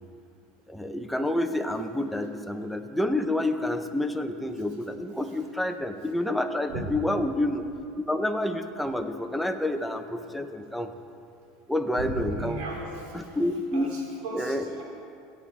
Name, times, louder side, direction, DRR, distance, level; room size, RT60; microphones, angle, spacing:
voice 1, 0.7-7.6 8.0-10.9 11.7-12.6 13.1-13.9 14.3-14.7, left 1 dB, ahead, 6 dB, 0.8 m, -28 dB
voice 2, 12.0-13.0 13.7-14.8, right 2 dB, 70° right, -3 dB, 3.0 m, -36 dB
17.0 x 8.7 x 3.4 m, 2.5 s
supercardioid pair, 105°, 0 cm